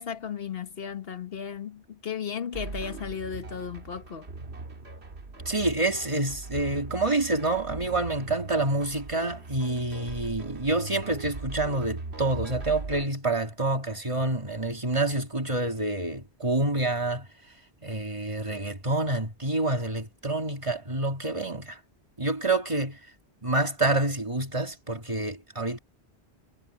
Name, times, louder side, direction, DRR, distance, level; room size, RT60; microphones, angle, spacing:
voice 1, 0.0-4.4, left 7 dB, 65° left, 1.5 m, -35 dB
sound 1, 2.5-13.1, right 3 dB, 80° right, 2.2 m, -40 dB
voice 2, 5.5-17.3 17.8-21.8 22.2-23.0 23.4-25.8, right 2 dB, 30° right, 2.0 m, -27 dB
omnidirectional pair, 1.1 m